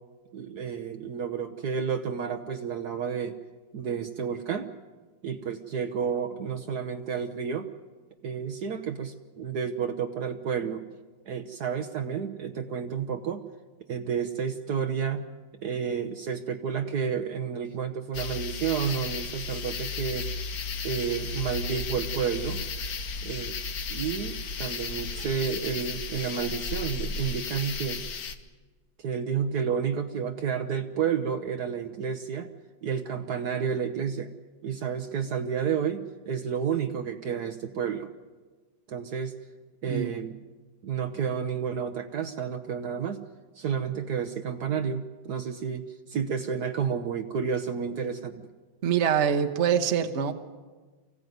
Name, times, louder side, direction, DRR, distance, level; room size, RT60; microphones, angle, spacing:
voice 1, 0.3-3.4 3.7-4.7 5.2-7.7 8.2-10.8 11.3-13.4 13.9-15.3 15.6-20.3 20.8-22.6 23.2-23.6 23.9-28.0 29.0-32.5 32.8-34.3 34.6-38.1 38.9-39.3 39.8-40.3 40.8-43.2 43.6-48.5, right 7 dB, 60° right, 7 dB, 1.4 m, -31 dB
sound 1, 18.1-28.4, left 4 dB, 55° left, 1.5 m, -34 dB
voice 2, 48.8-50.3, right 8 dB, 40° right, 6 dB, 1.3 m, -24 dB
25.0 x 16.0 x 9.4 m, 1.3 s
omnidirectional pair, 2.0 m